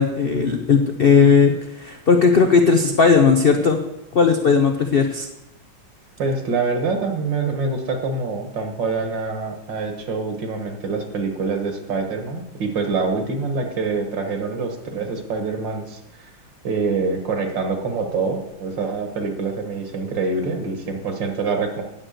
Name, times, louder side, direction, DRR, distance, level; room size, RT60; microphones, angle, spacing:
voice 1, 0.0-3.8 4.1-5.3, left 5 dB, 90° left, 5 dB, 0.5 m, -16 dB
voice 2, 6.2-16.3 16.6-21.8, right 4 dB, 75° right, 5 dB, 2.2 m, -25 dB
9.7 x 7.6 x 6.5 m, 0.91 s
omnidirectional pair, 2.0 m